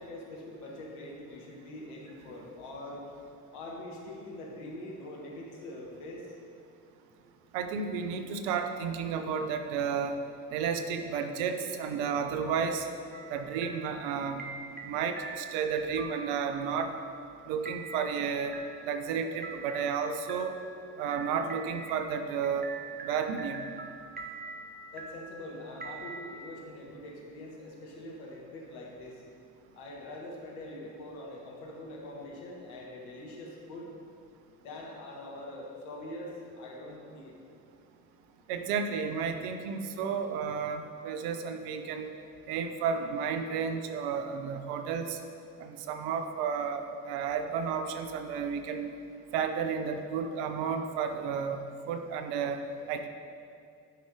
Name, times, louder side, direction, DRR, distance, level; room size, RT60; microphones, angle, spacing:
voice 1, 0.0-3.1 3.5-6.3 24.9-29.2 29.7-33.9 34.6-37.4, left 1 dB, 75° left, -2 dB, 1.6 m, -43 dB
voice 2, 7.5-10.2 10.5-12.9 13.3-14.5 14.8-16.9 17.5-18.5 18.8-20.5 21.0-22.7 23.0-23.7 38.5-42.1 42.5-45.2 45.6-48.9 49.3-51.6 51.9-52.6 52.9-53.1, right 6 dB, 70° right, 7 dB, 0.8 m, -32 dB
sound 1, 13.1-26.3, right 4 dB, 20° right, 1.1 m, -45 dB
11.5 x 5.7 x 4.8 m, 2.4 s
hypercardioid pair, 45°, 44 cm